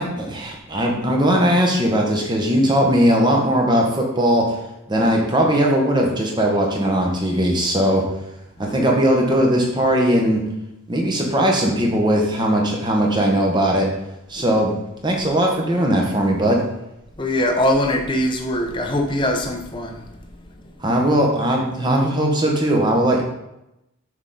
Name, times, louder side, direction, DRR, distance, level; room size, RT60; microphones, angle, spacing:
voice 1, 0.0-4.5 4.9-8.0 8.6-10.4 10.9-13.9 14.3-14.7 15.0-16.6 20.8-23.2, equal, 20° right, 0 dB, 1.0 m, -19 dB
voice 2, 8.6-8.9 14.5-14.6 17.2-20.0, left 1 dB, 20° left, 3 dB, 0.7 m, -22 dB
6.5 x 4.9 x 3.8 m, 0.87 s
head